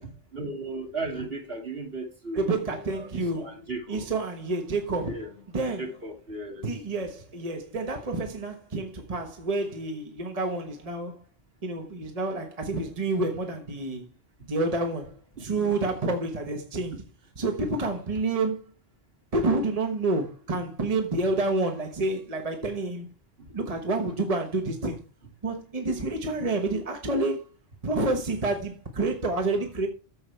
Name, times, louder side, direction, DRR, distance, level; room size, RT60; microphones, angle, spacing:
voice 1, 0.3-3.1 3.3-4.1 5.0-5.3 5.8-6.7 19.4-19.5 25.9-26.2, right 2 dB, 65° right, 2.7 m, -36 dB
voice 2, 2.3-3.6 3.9-5.2 5.5-5.8 6.6-11.2 11.6-14.1 14.5-17.0 17.4-18.6 19.3-23.1 23.5-25.0 25.4-27.5 27.8-29.9, right 2 dB, 35° right, 1.3 m, -28 dB
14.0 x 5.4 x 3.3 m
omnidirectional pair, 1.1 m